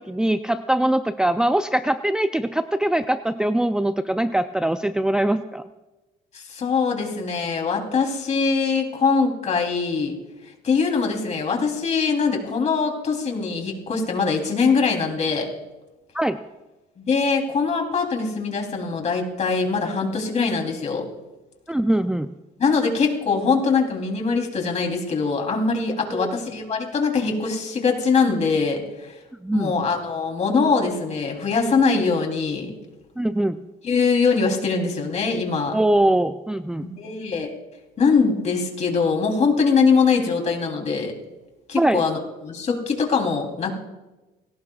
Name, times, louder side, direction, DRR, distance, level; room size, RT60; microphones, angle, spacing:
voice 1, 0.0-5.6 16.1-16.4 21.7-22.3 26.1-26.3 29.4-29.7 33.2-33.6 35.7-36.8 41.7-42.0, right 1 dB, 5° right, 8 dB, 0.5 m, -22 dB
voice 2, 6.3-10.2 10.4-15.5 17.0-21.1 22.6-29.1 29.5-32.7 33.8-35.8 36.8-37.5 38.0-41.1 41.7-43.7, left 5 dB, 40° left, 2 dB, 3.4 m, -22 dB
29.5 x 18.0 x 2.4 m, 1.1 s
cardioid pair, 110°, 17 cm